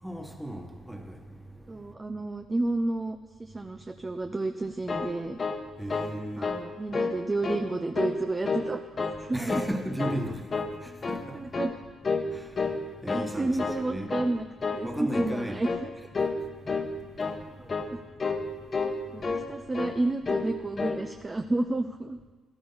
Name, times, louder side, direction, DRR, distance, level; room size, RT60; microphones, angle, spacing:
voice 1, 0.0-1.9 5.8-6.6 9.3-11.5 12.3-14.1 14.8-15.6 16.4-17.8 18.5-19.2, right 1 dB, 5° right, 1.5 m, -36 dB
voice 2, 1.7-5.4 6.4-9.6 11.3-11.7 13.1-14.4 14.7-15.9 17.6-17.7 19.1-22.2, right 2 dB, 20° right, 0.6 m, -31 dB
sound 1, 4.6-6.2 6.4-6.7 6.9-7.6 7.9-8.7 9.0-9.7 10.0-10.2 10.5-11.3 11.5-11.8 12.0-12.3 12.6-13.3 13.6-13.8 14.1-14.3 14.6-14.9 15.1-15.4 15.6-15.9 16.1-16.4 16.6-16.9 17.2-17.4 17.7-17.9 18.2-18.4 18.7-19.5 19.7-20.0 20.2-20.5 20.8-21.0, left 4 dB, 35° left, 1.2 m, -30 dB
14.0 x 13.0 x 4.0 m
cardioid pair, 90°, 0 cm